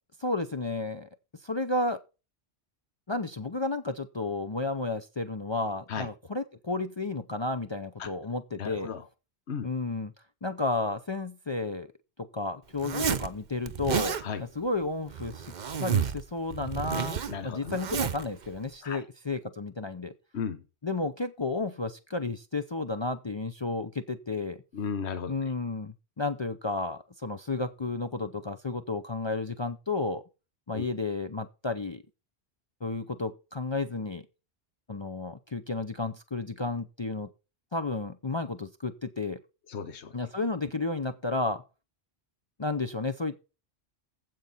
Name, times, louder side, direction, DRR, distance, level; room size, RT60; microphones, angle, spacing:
voice 1, 0.2-1.1 1.4-2.0 3.1-8.9 9.6-10.1 10.4-11.9 12.3-20.1 20.8-24.6 25.3-30.2 30.7-32.0 32.8-34.3 34.9-37.3 37.7-39.4 40.1-41.6 42.6-43.4, left 3 dB, 35° left, 9 dB, 0.5 m, -32 dB
voice 2, 8.6-9.0 9.5-9.7 14.2-14.4 17.3-17.8 18.8-19.0 20.3-20.6 24.7-25.5 30.7-30.9 39.7-40.1, left 6 dB, 80° left, 11 dB, 1.3 m, -35 dB
Zipper (clothing), 12.8-13.3 13.7-14.2 15.1-16.2 16.5-18.3, right 7 dB, 50° right, 0.8 m, -30 dB
15.5 x 5.3 x 4.1 m, 0.30 s
omnidirectional pair, 1.1 m